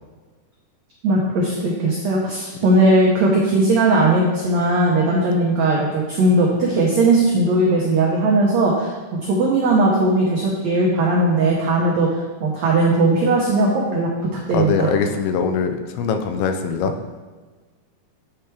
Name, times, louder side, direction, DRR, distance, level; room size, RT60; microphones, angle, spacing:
voice 1, 1.0-8.9 9.3-12.1 12.4-14.1 14.5-14.9, right 2 dB, 90° right, -4 dB, 1.5 m, -18 dB
voice 2, 14.5-16.9, left 5 dB, 90° left, 7 dB, 2.5 m, -22 dB
8.7 x 3.3 x 4.5 m, 1.4 s
omnidirectional pair, 4.3 m